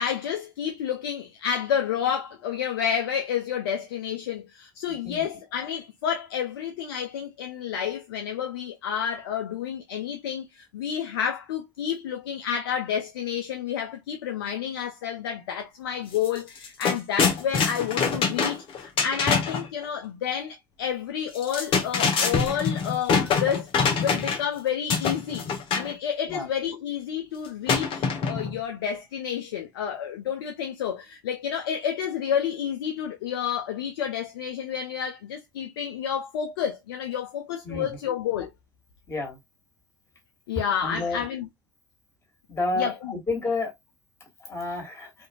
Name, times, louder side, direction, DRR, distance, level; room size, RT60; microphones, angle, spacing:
voice 1, 0.0-38.5 40.5-41.5 42.8-43.1, left 8 dB, 80° left, 0.4 m, -30 dB
sound 1, 16.1-16.3 16.6-19.7 21.3-24.5 24.9-25.9 27.7-28.6, left 5 dB, 50° left, 0.9 m, -25 dB
voice 2, 39.1-39.4 40.8-41.2 42.5-43.7 44.4-45.1, left 3 dB, 20° left, 1.7 m, -30 dB
2.8 x 2.5 x 2.2 m
hypercardioid pair, 70°, 12 cm